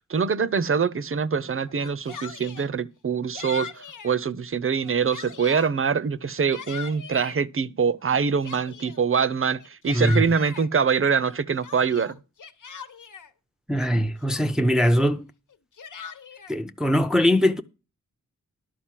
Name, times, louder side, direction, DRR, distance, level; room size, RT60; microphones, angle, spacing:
voice 1, 0.1-12.2, right 6 dB, 45° right, 0.6 m, -24 dB
Yell, 1.7-2.7 3.3-4.1 4.7-5.7 6.2-7.4 8.1-9.1 9.6-10.7 11.2-13.3 13.9-14.0 14.3-14.7 15.5-16.6, left 6 dB, 80° left, 1.1 m, -40 dB
voice 2, 9.9-10.2 13.7-15.3 16.5-17.6, equal, ahead, 0.5 m, -21 dB
11.5 x 5.1 x 7.4 m
wide cardioid pair, 125°, 31 cm